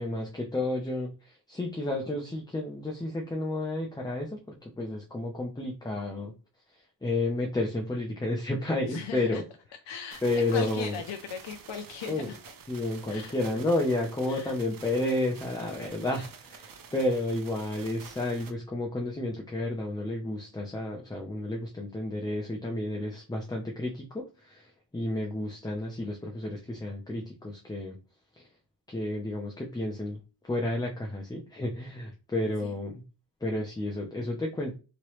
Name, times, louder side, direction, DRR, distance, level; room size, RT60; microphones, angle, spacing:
voice 1, 0.0-6.3 6.7-9.4 10.2-11.0 12.1-12.3 12.7-28.0 28.4-28.5 28.9-32.9 33.4-34.7, left 2 dB, 10° left, 0 dB, 0.5 m, -31 dB
voice 2, 8.9-9.4 9.9-12.4 13.1-13.4 13.7-13.8 14.3-14.6 15.6-16.1 32.4-32.8, left 7 dB, 65° left, 5 dB, 0.6 m, -39 dB
sound 1, 10.1-18.5, right 6 dB, 45° right, 0.6 m, -49 dB
3.1 x 2.9 x 3.0 m, 0.33 s
wide cardioid pair, 110°, 47 cm